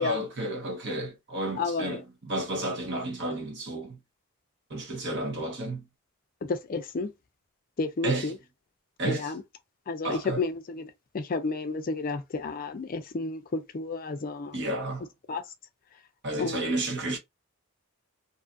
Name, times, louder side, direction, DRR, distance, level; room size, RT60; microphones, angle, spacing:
voice 1, 0.0-4.0 4.7-5.8 8.0-8.3 9.0-9.3 10.0-10.4 14.5-15.1 16.2-17.2, right 1 dB, 55° right, 1.0 m, -31 dB
voice 2, 1.6-2.0 6.5-7.1 7.8-8.4 9.0-9.4 9.9-14.6 15.3-15.4 16.4-16.7, left 3 dB, 40° left, 0.4 m, -31 dB
2.6 x 2.4 x 2.5 m
head